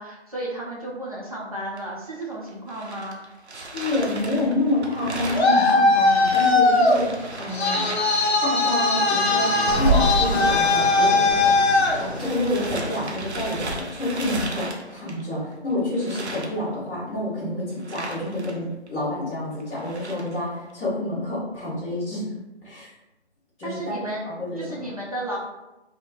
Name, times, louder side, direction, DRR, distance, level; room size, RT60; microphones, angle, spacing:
voice 1, 0.0-3.2 23.6-24.3 24.6-25.4, right 1 dB, 35° right, -5 dB, 0.6 m, -33 dB
sound 1, 1.8-1.9 2.2-15.5 15.9-16.5 17.8-18.6 18.9-19.0 19.6-20.4, right 2 dB, 75° right, 0.7 m, -32 dB
voice 2, 3.5-7.8 8.4-22.2 22.6-22.9 23.6-24.8, left 2 dB, 10° left, -18 dB, 0.8 m, -28 dB
Traffic noise roadway noise, 5.0-12.7, left 2 dB, 65° left, 0.6 m, -20 dB
3.0 x 2.1 x 2.5 m, 0.97 s
figure-of-eight pair, 165°, 34 cm